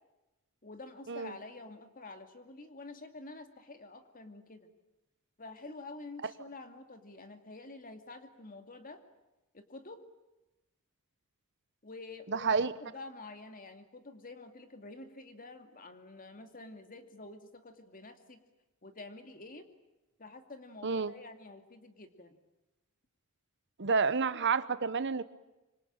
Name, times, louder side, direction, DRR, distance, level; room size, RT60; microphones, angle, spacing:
voice 1, 0.6-4.7 5.4-9.0 9.5-10.0 11.8-18.4 18.8-19.7 20.2-22.4, left 2 dB, 40° left, 7 dB, 2.5 m, -48 dB
voice 2, 12.3-12.7 20.8-21.1 23.8-25.2, right 5 dB, 55° right, 14 dB, 1.0 m, -29 dB
25.5 x 25.5 x 8.9 m, 1.0 s
head